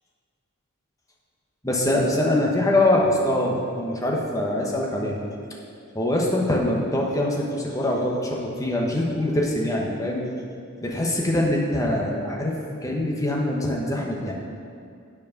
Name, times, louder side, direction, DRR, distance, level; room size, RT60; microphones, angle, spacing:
voice 1, 1.6-5.2 5.9-10.2 10.8-14.3, left 1 dB, 15° left, -2 dB, 1.0 m, -23 dB
8.2 x 4.8 x 6.4 m, 2.3 s
head